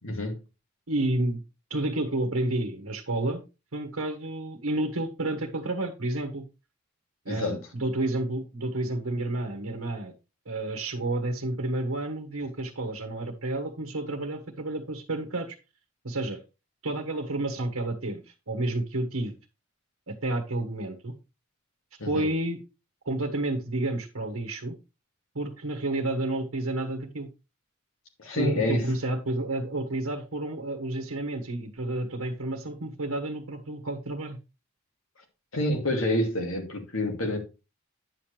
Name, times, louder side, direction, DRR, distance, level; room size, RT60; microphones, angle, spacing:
voice 1, 0.0-0.4 7.3-7.6 22.0-22.3 28.2-28.9 35.5-37.4, left 1 dB, 70° left, 2.4 m, -28 dB
voice 2, 0.9-1.4 1.7-3.4 3.7-6.4 7.2-10.1 10.4-15.6 16.0-16.4 16.8-19.3 20.1-21.1 22.1-22.6 23.0-24.8 25.3-27.3 28.3-34.4, right 2 dB, 80° right, 1.3 m, -30 dB
9.6 x 7.4 x 3.3 m
head